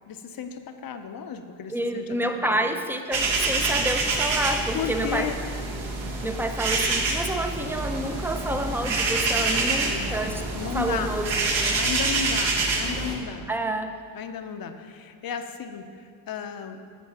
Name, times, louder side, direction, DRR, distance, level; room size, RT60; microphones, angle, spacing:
voice 1, 0.1-2.0 2.4-2.7 4.7-5.4 9.3-10.2 10.5-11.1 11.8-13.5 14.1-15.8 16.3-16.8, left 7 dB, 45° left, 7 dB, 0.7 m, -34 dB
voice 2, 1.7-5.3 6.2-10.4 10.7-11.8 13.5-14.0, right 1 dB, 5° right, 6 dB, 0.6 m, -29 dB
sound 1, 3.1-13.2, right 3 dB, 65° right, 1.5 m, -26 dB
Drum kit / Drum, 7.6-13.2, equal, 85° right, 1.6 m, -42 dB
9.5 x 4.5 x 5.6 m, 2.1 s
supercardioid pair, 80°, 50 cm